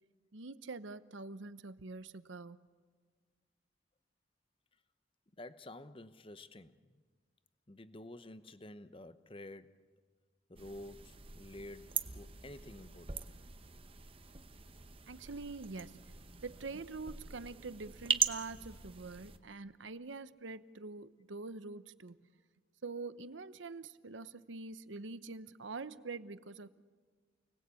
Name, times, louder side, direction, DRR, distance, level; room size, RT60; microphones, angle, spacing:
voice 1, 0.3-2.6 15.1-16.0 16.4-22.2 22.8-26.7, right 3 dB, 80° right, 0.9 m, -45 dB
voice 2, 5.4-7.0 7.7-9.8 10.5-13.2, left 1 dB, 30° left, 0.9 m, -50 dB
sound 1, 10.6-19.4, right 7 dB, 30° right, 1.0 m, -41 dB
29.0 x 19.5 x 8.4 m
head